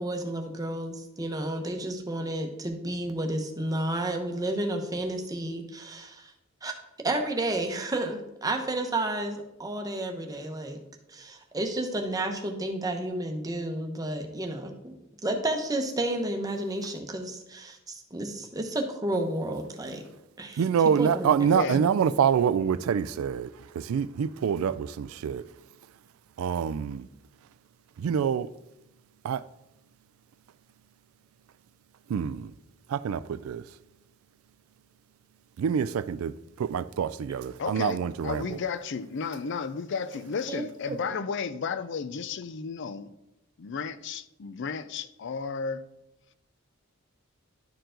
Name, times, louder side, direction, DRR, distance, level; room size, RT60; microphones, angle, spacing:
voice 1, 0.0-6.3 6.6-6.7 7.0-10.8 11.1-15.0 15.2-20.0 20.4-20.5 21.0-21.3 21.7-21.8 40.5-41.0, right 1 dB, 15° right, 0.9 m, -31 dB
voice 2, 20.6-25.4 26.4-27.1 28.0-28.5 29.2-29.5 32.1-32.5 32.9-33.6 35.6-38.6, right 7 dB, 80° right, 0.3 m, -26 dB
voice 3, 21.5-21.8 37.6-43.1 43.6-45.9, left 5 dB, 60° left, 0.4 m, -33 dB
11.5 x 4.6 x 3.8 m
head